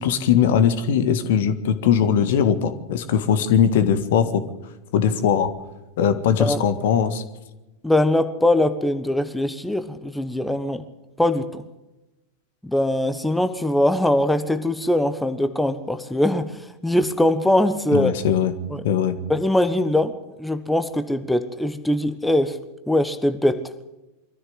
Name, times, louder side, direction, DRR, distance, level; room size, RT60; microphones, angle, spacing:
voice 1, 0.0-4.4 4.9-5.5 6.0-7.2 17.9-18.5 18.8-19.2, left 8 dB, 55° left, 11 dB, 1.7 m, -20 dB
voice 2, 7.8-10.8 11.2-11.6 12.6-18.1 18.7-18.8 19.3-22.6 22.9-23.7, left 1 dB, 5° left, 10 dB, 1.2 m, -22 dB
23.5 x 14.5 x 8.1 m, 1.0 s
figure-of-eight pair, 90°, 0 cm